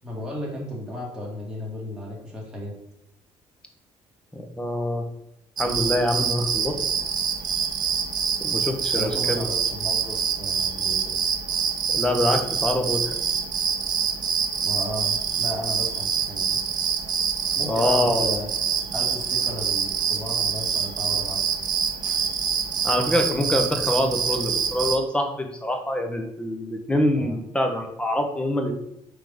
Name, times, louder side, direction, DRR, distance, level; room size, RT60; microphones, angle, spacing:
voice 1, 0.0-2.7 8.9-11.1 14.6-16.6 17.6-18.5 18.9-21.4 27.1-27.4, left 1 dB, 5° right, -4 dB, 2.0 m, -34 dB
voice 2, 4.3-5.0 5.6-6.8 8.4-9.5 11.9-13.1 17.7-18.3 22.8-28.7, left 1 dB, 10° left, 4 dB, 0.8 m, -25 dB
sound 1, 5.6-25.0, right 6 dB, 40° right, 0.6 m, -26 dB
5.7 x 3.5 x 5.3 m, 0.81 s
cardioid pair, 140°, 11 cm